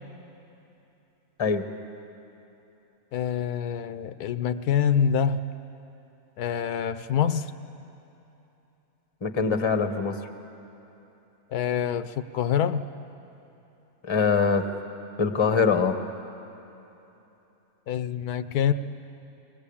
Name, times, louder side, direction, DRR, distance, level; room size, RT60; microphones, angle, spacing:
voice 1, 3.1-5.5 6.4-7.5 11.5-12.8 17.9-18.7, left 8 dB, 80° left, 11 dB, 1.2 m, -26 dB
voice 2, 9.2-10.2 14.0-14.7 15.2-16.0, left 5 dB, 20° left, 7 dB, 0.9 m, -23 dB
24.0 x 19.0 x 8.5 m, 3.0 s
omnidirectional pair, 1.6 m